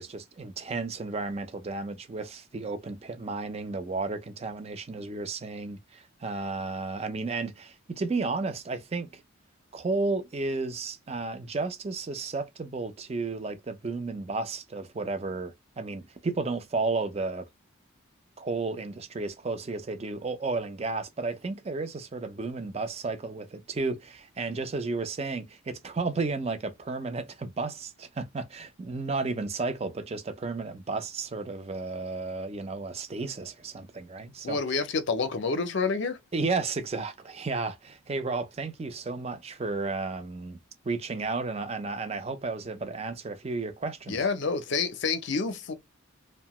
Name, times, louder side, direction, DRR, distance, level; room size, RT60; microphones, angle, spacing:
voice 1, 0.0-9.2 9.7-17.5 18.4-34.6 36.3-40.6 40.8-44.3, right 3 dB, 30° right, 0.4 m, -33 dB
voice 2, 34.4-36.2 44.1-45.7, left 4 dB, 60° left, 0.5 m, -28 dB
2.7 x 2.1 x 2.9 m
head